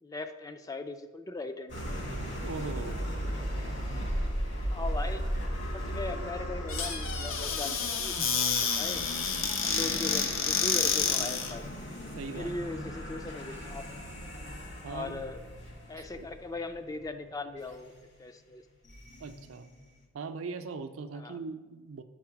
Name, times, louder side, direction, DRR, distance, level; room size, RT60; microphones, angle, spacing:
voice 1, 0.0-2.0 4.7-5.2 5.7-9.0 9.6-11.7 12.3-14.0 14.9-15.4 15.9-18.6 21.1-21.4, left 2 dB, 15° left, 8 dB, 0.3 m, -39 dB
sound 1, 1.7-18.0 18.8-20.0, equal, 60° left, 1.4 m, -37 dB
voice 2, 2.4-3.0 12.2-12.5 14.8-15.2 16.2-16.3 19.2-19.7 20.1-22.0, right 4 dB, 75° right, 8 dB, 0.5 m, -39 dB
Squeak / Cupboard open or close, 6.7-11.6, left 6 dB, 80° left, 0.7 m, -29 dB
5.5 x 4.8 x 5.8 m, 1.3 s
head